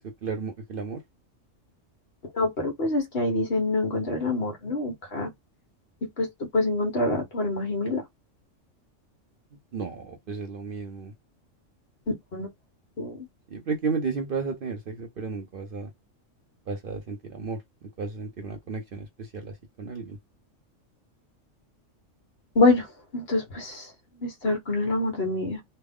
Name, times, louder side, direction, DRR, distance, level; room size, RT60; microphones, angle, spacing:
voice 1, 0.2-1.0 9.7-11.1 13.5-15.9 16.7-17.6 18.0-19.1 19.3-19.5 19.8-20.2, right 4 dB, 55° right, 0.7 m, -33 dB
voice 2, 2.3-5.3 6.0-6.3 6.5-8.0 12.3-12.5 13.0-13.3 22.5-22.9 23.1-23.9 24.2-25.6, left 2 dB, 50° left, 1.3 m, -25 dB
3.2 x 2.3 x 3.5 m
omnidirectional pair, 1.3 m